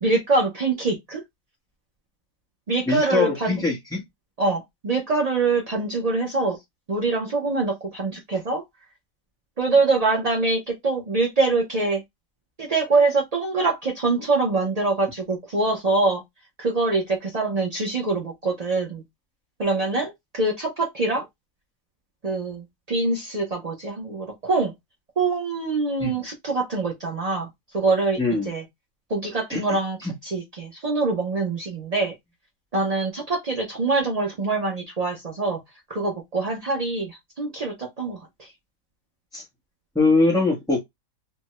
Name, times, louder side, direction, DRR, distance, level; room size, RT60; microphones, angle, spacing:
voice 1, 0.0-1.2 2.7-3.6 4.4-6.6 6.9-8.6 9.6-12.0 12.6-16.2 16.6-19.0 19.6-21.3 22.2-24.7 25.2-27.5 27.7-28.2 28.5-28.6 29.1-32.1 32.7-35.6 35.9-38.5, right 3 dB, 70° right, 0.3 m, -24 dB
voice 2, 2.9-4.0 26.0-26.2 28.2-28.5 29.5-30.1 39.3-39.4 39.9-40.8, left 3 dB, 5° left, 0.6 m, -22 dB
3.4 x 2.1 x 2.9 m
omnidirectional pair, 1.8 m